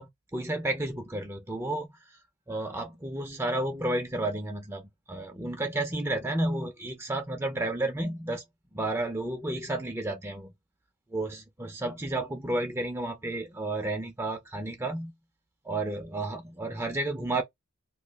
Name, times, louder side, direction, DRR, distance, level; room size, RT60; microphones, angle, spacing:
voice 1, 0.0-2.2 2.5-4.8 5.1-8.4 8.7-10.5 11.1-15.1 15.6-17.4, right 2 dB, 10° right, 0.5 m, -32 dB
3.0 x 2.3 x 3.4 m
head